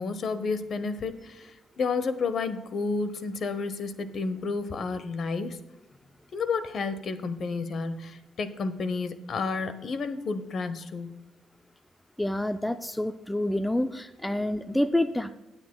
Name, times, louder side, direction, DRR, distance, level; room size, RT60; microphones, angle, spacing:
voice 1, 0.0-1.5 1.8-5.6 6.3-11.1, left 4 dB, 55° left, 11 dB, 0.9 m, -31 dB
voice 2, 12.2-15.3, left 1 dB, 5° left, 10 dB, 0.4 m, -28 dB
19.0 x 8.0 x 2.3 m, 1.0 s
cardioid pair, 90°, 0 cm